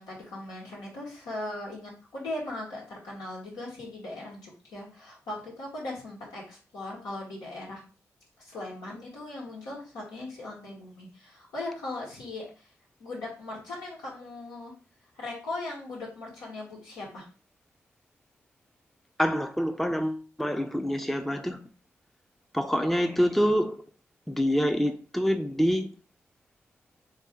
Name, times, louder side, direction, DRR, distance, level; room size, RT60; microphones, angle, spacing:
voice 1, 0.0-7.8 8.4-12.7 13.0-14.7 15.1-17.2, left 2 dB, 90° left, 1.5 m, -39 dB
voice 2, 19.2-21.6 22.5-23.8 24.3-25.9, equal, 5° left, 0.5 m, -26 dB
3.3 x 2.7 x 3.6 m
supercardioid pair, 40°, 7 cm